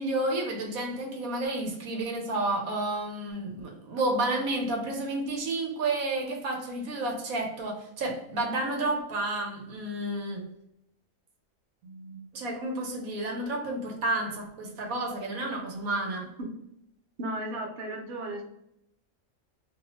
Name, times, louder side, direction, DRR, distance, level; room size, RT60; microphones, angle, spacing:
voice 1, 0.0-10.5 11.8-16.3, right 2 dB, 80° right, 1.2 m, -31 dB
voice 2, 17.2-18.4, right 1 dB, 55° right, 0.9 m, -34 dB
2.8 x 2.1 x 3.9 m
omnidirectional pair, 1.5 m